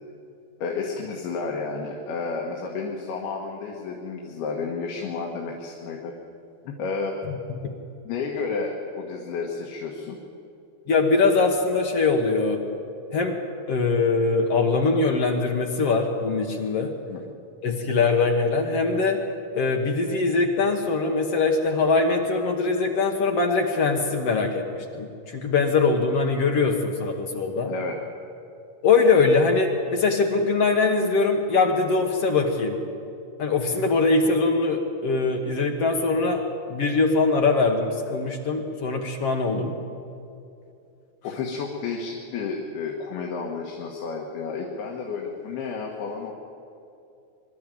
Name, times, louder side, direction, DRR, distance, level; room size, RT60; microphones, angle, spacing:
voice 1, 0.6-6.1 6.7-7.2 8.1-10.2 17.1-17.2 27.7-28.0 39.5-39.6 41.2-46.3, left 4 dB, 80° left, 0 dB, 3.5 m, -31 dB
voice 2, 10.9-12.6 13.1-13.4 13.7-16.9 17.6-19.2 19.5-27.7 28.8-32.8 33.4-36.4 36.7-39.7, left 4 dB, 60° left, 2 dB, 1.7 m, -22 dB
23.5 x 12.5 x 9.2 m, 2.6 s
omnidirectional pair, 4.5 m